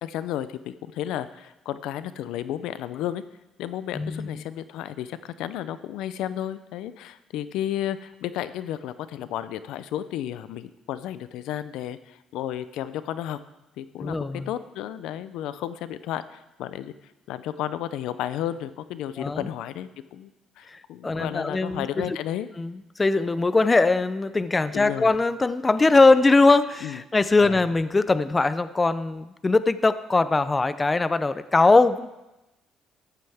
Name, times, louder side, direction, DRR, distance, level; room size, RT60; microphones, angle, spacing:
voice 1, 0.0-3.2 3.6-13.4 13.8-16.9 17.3-20.3 20.6-22.5 24.7-25.1 26.8-27.0 27.4-27.6, left 11 dB, 85° left, 14 dB, 0.5 m, -33 dB
voice 2, 3.9-4.4 14.0-14.5 19.2-19.5 20.7-22.2 22.6-32.1, left 3 dB, 20° left, 14 dB, 0.5 m, -21 dB
14.0 x 11.0 x 3.5 m, 0.98 s
cardioid pair, 100°, 0 cm